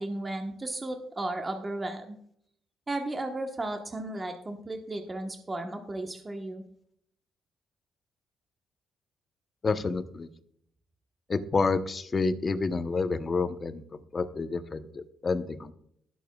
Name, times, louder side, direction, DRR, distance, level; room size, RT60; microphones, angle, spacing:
voice 1, 0.0-2.2 2.9-6.6, right 2 dB, 25° right, 4 dB, 1.2 m, -34 dB
voice 2, 9.6-10.3 11.3-13.8 14.1-15.7, left 4 dB, 35° left, 10 dB, 0.9 m, -29 dB
19.5 x 7.0 x 2.3 m, 0.69 s
cardioid pair, 90°, 0 cm